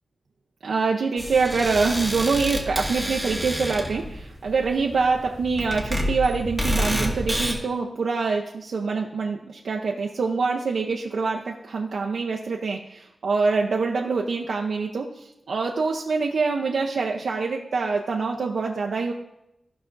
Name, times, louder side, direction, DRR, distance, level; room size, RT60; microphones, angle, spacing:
voice 1, 0.6-15.1 15.5-19.1, right 4 dB, 85° right, -1 dB, 0.6 m, -25 dB
sound 1, 1.2-7.5, equal, 5° left, 1.7 m, -29 dB
15.0 x 5.8 x 2.6 m, 0.85 s
cardioid pair, 70°, 0 cm